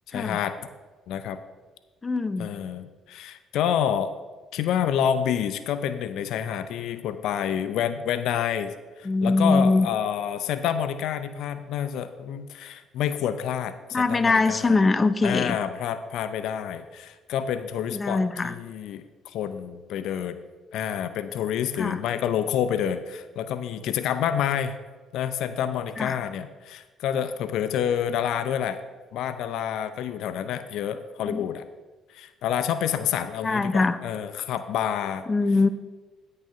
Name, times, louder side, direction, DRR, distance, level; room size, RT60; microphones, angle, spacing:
voice 1, 0.1-0.6 1.1-1.4 2.4-4.1 4.5-14.7 15.2-20.4 20.7-24.8 25.1-28.8 29.1-31.6 32.1-35.3, left 9 dB, 75° left, 11 dB, 0.5 m, -28 dB
voice 2, 2.0-2.5 9.0-9.9 13.9-15.6 17.9-18.5 21.8-22.0 26.0-26.2 31.3-31.4 33.4-34.0 35.3-35.7, left 3 dB, 30° left, 13 dB, 0.6 m, -22 dB
8.8 x 6.6 x 5.6 m, 1.3 s
supercardioid pair, 60°, 0 cm